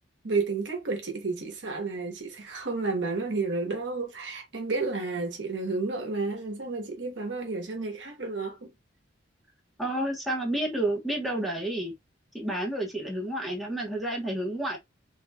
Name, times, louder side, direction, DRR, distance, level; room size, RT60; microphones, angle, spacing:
voice 1, 0.2-8.7, right 3 dB, 65° right, 1.1 m, -31 dB
voice 2, 9.8-11.9 12.3-14.8, right 1 dB, ahead, 1.2 m, -30 dB
3.5 x 2.9 x 2.3 m
head